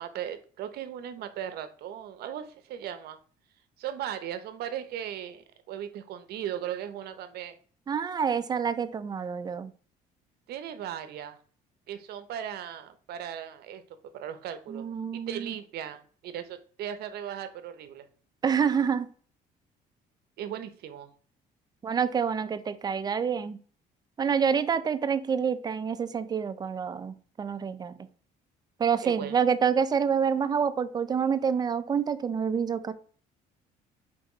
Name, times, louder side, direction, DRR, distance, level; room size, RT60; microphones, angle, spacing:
voice 1, 0.0-3.2 3.8-7.6 10.5-11.4 11.9-13.8 14.1-14.8 15.1-18.1 20.4-21.1 29.0-29.4, right 10 dB, 70° right, 10 dB, 0.7 m, -37 dB
voice 2, 7.9-9.7 14.7-15.5 18.4-19.1 21.8-23.6 24.2-27.9 28.8-32.9, right 7 dB, 25° right, 11 dB, 0.4 m, -27 dB
4.5 x 2.9 x 3.7 m, 0.43 s
cardioid pair, 110°, 17 cm